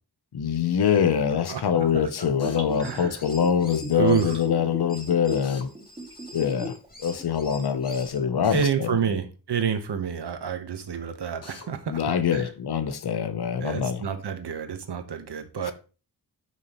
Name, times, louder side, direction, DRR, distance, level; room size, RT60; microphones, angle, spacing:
voice 1, 0.3-5.7 6.3-6.7 7.0-9.2 11.9-14.1 15.6-15.7, left 8 dB, 65° left, 0.8 m, -24 dB
Gurgling / Bathtub (filling or washing), 1.7-6.9 7.2-7.3, equal, 15° right, 3.0 m, -38 dB
Drill, 2.4-2.6 5.4-5.7 8.4-8.7 11.4-11.7, left 3 dB, 35° left, 1.2 m, -44 dB
sound 1, 2.6-4.4 4.9-8.2, left 1 dB, 20° left, 2.1 m, -46 dB
voice 2, 2.8-3.1 3.9-4.4 8.5-12.0 12.3-12.4 13.6-15.7, right 7 dB, 75° right, 1.3 m, -28 dB
11.0 x 6.1 x 3.1 m
wide cardioid pair, 165°, 41 cm